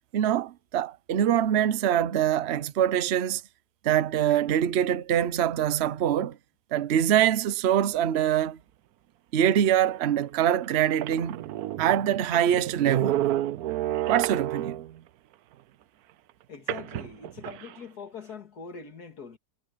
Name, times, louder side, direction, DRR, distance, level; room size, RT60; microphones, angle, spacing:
voice 1, 0.1-3.4 3.8-6.4 6.7-8.6 9.3-11.5 11.8-13.2 14.1-14.8, right 10 dB, 50° right, 0.9 m, -24 dB
sound 1, 10.0-10.1 10.6-10.7 10.9-15.0 16.7-17.8, right 14 dB, 75° right, 1.1 m, -31 dB
voice 2, 16.5-19.4, left 5 dB, 70° left, 2.8 m, -42 dB
omnidirectional pair, 1.7 m